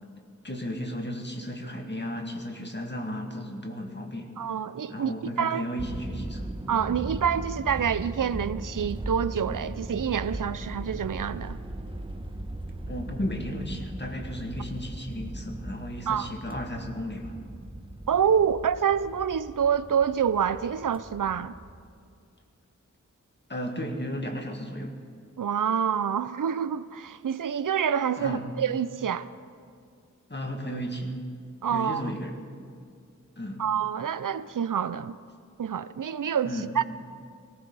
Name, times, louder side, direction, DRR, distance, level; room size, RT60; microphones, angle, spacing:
voice 1, 0.4-4.3 4.9-6.5 12.9-17.4 23.5-25.0 28.2-28.4 30.3-31.1 31.7-32.4 33.4-33.6 36.4-36.7, equal, 35° left, 2.0 m, -34 dB
voice 2, 4.4-5.6 6.7-11.6 16.1-16.3 18.1-21.5 25.4-29.3 31.6-32.0 33.6-35.1 35.6-36.8, right 8 dB, 85° right, 0.5 m, -27 dB
sound 1, 5.8-21.9, right 1 dB, 15° right, 1.1 m, -38 dB
19.5 x 17.5 x 4.1 m
wide cardioid pair, 55°, 31 cm